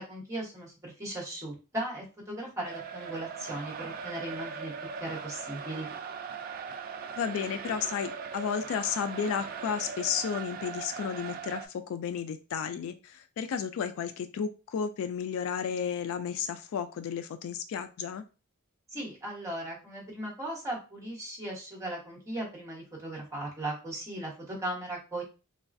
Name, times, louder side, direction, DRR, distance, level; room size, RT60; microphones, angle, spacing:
voice 1, 0.0-4.7 5.0-5.9 18.9-25.2, right 1 dB, 15° right, -3 dB, 1.1 m, -37 dB
sound 1, 2.6-11.7, right 6 dB, 40° right, 0.3 m, -40 dB
voice 2, 7.2-18.2, left 7 dB, 65° left, 10 dB, 0.3 m, -33 dB
3.1 x 2.3 x 2.5 m, 0.31 s
head